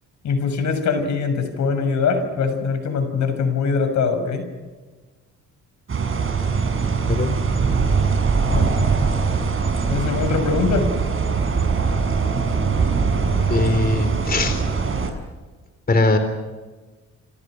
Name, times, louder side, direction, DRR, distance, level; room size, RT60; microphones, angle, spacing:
voice 1, 0.2-4.4 8.5-8.8 9.9-10.9, left 5 dB, 70° left, 8 dB, 6.6 m, -22 dB
sound 1, 5.9-15.1, right 5 dB, 45° right, 6.8 m, -21 dB
voice 2, 13.5-14.6 15.9-16.2, left 2 dB, 30° left, 8 dB, 3.9 m, -20 dB
30.0 x 26.5 x 6.3 m, 1.3 s
cardioid pair, 90°, 30 cm